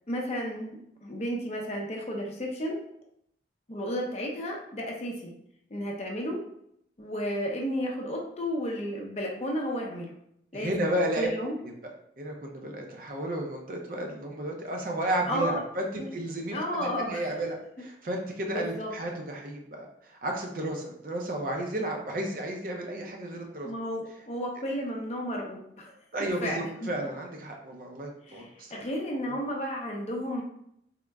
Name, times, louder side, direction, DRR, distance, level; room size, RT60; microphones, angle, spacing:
voice 1, 0.1-0.8 1.0-2.8 3.7-5.3 5.7-6.4 7.0-10.1 10.5-10.9 11.2-11.6 15.3-15.6 16.0-16.1 16.5-17.2 18.5-18.9 23.6-26.9 28.2-30.4, equal, 35° left, 0 dB, 0.6 m, -33 dB
voice 2, 10.5-11.3 11.6-11.7 12.2-23.7 26.1-28.8 29.2-29.3, right 1 dB, 50° right, 1 dB, 0.6 m, -33 dB
3.6 x 2.1 x 3.4 m, 0.73 s
head